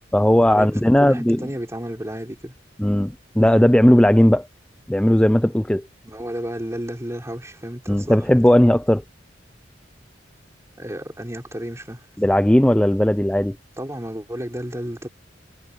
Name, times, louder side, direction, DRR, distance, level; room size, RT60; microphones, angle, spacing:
voice 1, 0.1-1.5 2.8-4.5 4.9-5.8 7.9-9.0 12.2-13.6, left 1 dB, 5° left, 0.5 m, -16 dB
voice 2, 1.0-2.6 6.0-8.2 10.8-12.1 13.8-15.1, equal, 15° right, 4.4 m, -32 dB
head